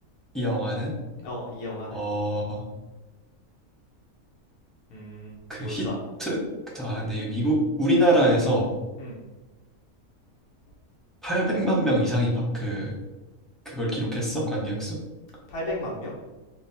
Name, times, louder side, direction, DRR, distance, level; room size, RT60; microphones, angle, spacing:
voice 1, 0.3-1.0 1.9-2.6 5.5-5.9 6.2-6.4 6.7-8.7 11.2-12.9 13.6-15.0, right 1 dB, ahead, -5 dB, 0.6 m, -24 dB
voice 2, 1.2-2.0 4.9-5.3 5.6-6.0 9.0-9.2 15.5-16.1, left 1 dB, 80° left, -5 dB, 1.4 m, -34 dB
4.3 x 2.2 x 4.0 m, 1.1 s
omnidirectional pair, 1.5 m